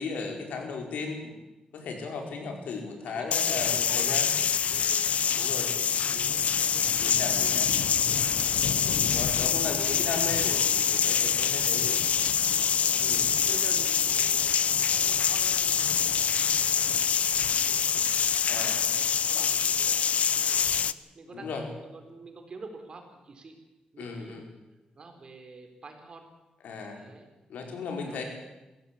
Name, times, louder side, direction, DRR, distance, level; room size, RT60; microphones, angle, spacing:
voice 1, 0.0-1.4 1.7-4.3 5.4-5.7 7.0-7.7 9.0-12.0 13.0-13.3 18.5-18.8 21.3-21.6 24.0-24.4 26.6-27.0 27.5-28.2, left 4 dB, 85° left, 3 dB, 5.2 m, -36 dB
voice 2, 2.0-2.3 3.1-7.5 7.8-8.9 12.7-13.1 13.4-14.6 14.9-16.4 17.1-18.1 18.6-21.5 21.8-23.6 23.9-24.4 24.9-26.3 26.9-27.3 28.0-28.2, right 3 dB, 35° right, 5 dB, 4.1 m, -48 dB
sound 1, 3.3-20.9, left 8 dB, 60° left, 0.7 m, -25 dB
22.0 x 16.5 x 8.6 m, 1.0 s
wide cardioid pair, 140°, 3 cm